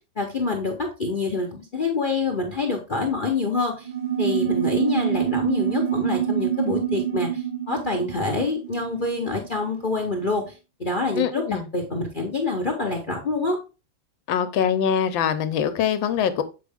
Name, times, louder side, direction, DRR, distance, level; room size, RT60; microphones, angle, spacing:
voice 1, 0.2-3.9 4.2-10.4 10.8-11.4 11.7-13.6, left 3 dB, 35° left, 3 dB, 0.9 m, -26 dB
sound 1, 3.8-9.8, right 10 dB, 85° right, 1.9 m, -26 dB
voice 2, 11.2-11.7 14.3-16.4, left 8 dB, 75° left, 11 dB, 1.5 m, -23 dB
7.6 x 4.7 x 3.5 m, 0.30 s
omnidirectional pair, 2.1 m